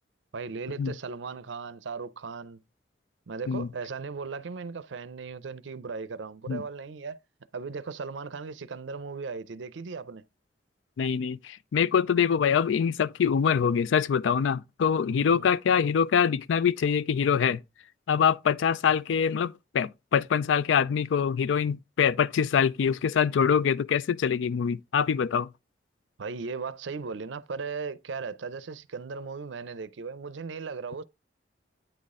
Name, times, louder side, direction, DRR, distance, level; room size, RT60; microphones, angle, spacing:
voice 1, 0.3-2.6 3.3-7.2 7.5-10.2 15.1-15.4 26.2-31.0, right 4 dB, 80° right, 0.5 m, -37 dB
voice 2, 11.0-17.6 18.1-25.5, left 7 dB, 90° left, 0.4 m, -24 dB
9.0 x 4.1 x 3.6 m
head